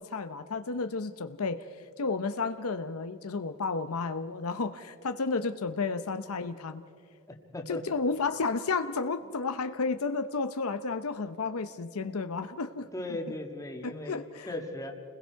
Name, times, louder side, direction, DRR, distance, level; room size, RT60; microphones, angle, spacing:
voice 1, 0.0-1.7 2.0-6.8 7.7-12.9 13.8-14.5, left 4 dB, 75° left, 9 dB, 0.7 m, -32 dB
voice 2, 7.5-8.0 12.9-15.0, left 1 dB, 15° left, 3 dB, 1.8 m, -37 dB
30.0 x 21.0 x 4.6 m, 2.3 s
head